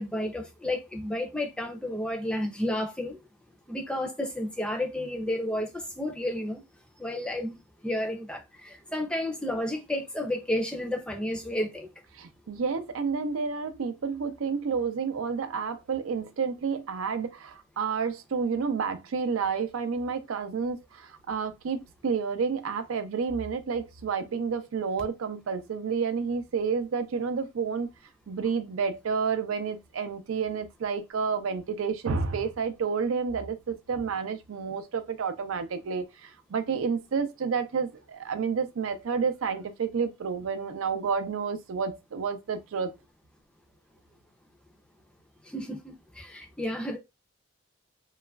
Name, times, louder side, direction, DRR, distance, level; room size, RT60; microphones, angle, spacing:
voice 1, 0.0-3.2 3.7-6.6 7.0-7.6 7.8-11.9 45.4-47.0, left 1 dB, 5° left, 0.4 m, -31 dB
voice 2, 12.2-27.9 28.3-42.9, right 5 dB, 85° right, 0.4 m, -30 dB
3.0 x 2.3 x 2.2 m
head